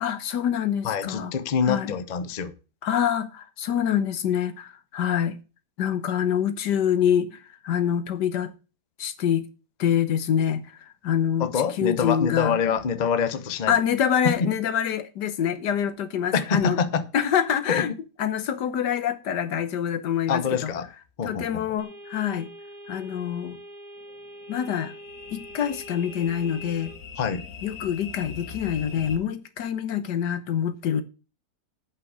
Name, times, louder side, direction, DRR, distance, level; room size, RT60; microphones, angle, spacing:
voice 1, 0.0-1.3 1.6-1.9 2.8-5.4 5.8-8.5 9.0-9.5 9.8-10.6 11.0-11.5 11.8-12.6 13.7-16.8 17.1-17.9 18.2-20.7 21.2-22.5 22.9-23.6 24.5-24.9 25.3-26.9 27.6-31.0, left 9 dB, 80° left, 1.6 m, -25 dB
voice 2, 0.8-2.5 11.4-13.8 14.2-14.5 16.3-17.0 17.7-17.9 20.3-20.9 21.2-21.6 27.2-27.5, left 6 dB, 40° left, 0.6 m, -25 dB
sound 1, 21.8-26.9, equal, 75° right, 3.5 m, -44 dB
sound 2, 24.1-29.2, left 5 dB, 60° left, 1.7 m, -41 dB
8.3 x 5.7 x 7.9 m
omnidirectional pair, 1.8 m